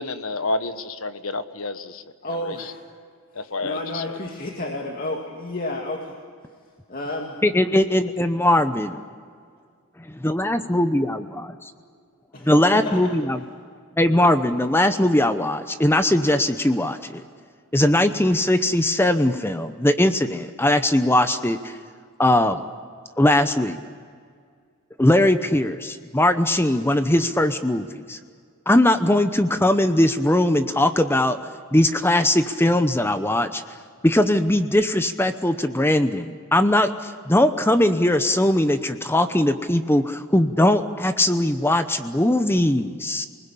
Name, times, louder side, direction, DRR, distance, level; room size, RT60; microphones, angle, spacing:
voice 1, 0.0-2.6 3.3-4.2, left 2 dB, 75° left, 11 dB, 1.3 m, -30 dB
voice 2, 2.2-2.8 3.3-6.1 6.9-7.4 12.3-13.1, left 1 dB, 40° left, 1 dB, 2.4 m, -31 dB
voice 3, 7.4-9.0 10.2-11.5 12.4-13.4 14.0-17.2 17.7-21.7 22.2-22.6 23.2-23.8 25.0-28.2 28.7-31.4 31.7-33.6 34.0-43.3, left 1 dB, 10° left, 9 dB, 0.8 m, -20 dB
28.0 x 20.5 x 8.4 m, 2.1 s
head